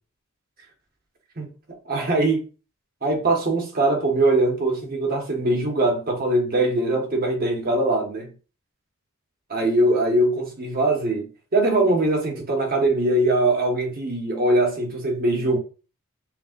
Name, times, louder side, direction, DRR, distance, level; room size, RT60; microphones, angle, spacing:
voice 1, 1.8-2.4 3.0-8.3 9.5-11.3 11.5-15.6, right 2 dB, 40° right, 1.0 m, -22 dB
5.9 x 2.4 x 2.5 m
head